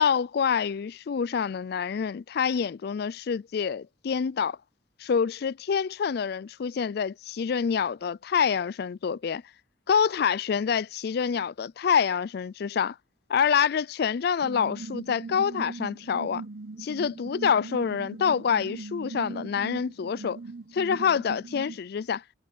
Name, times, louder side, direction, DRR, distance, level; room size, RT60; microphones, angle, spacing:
voice 1, 0.0-4.6 5.0-9.4 9.9-13.0 13.3-16.4 16.8-20.4 20.7-22.2, left 7 dB, 55° left, 0.4 m, -26 dB
sound 1, 14.4-21.8, right 3 dB, 55° right, 0.9 m, -40 dB
head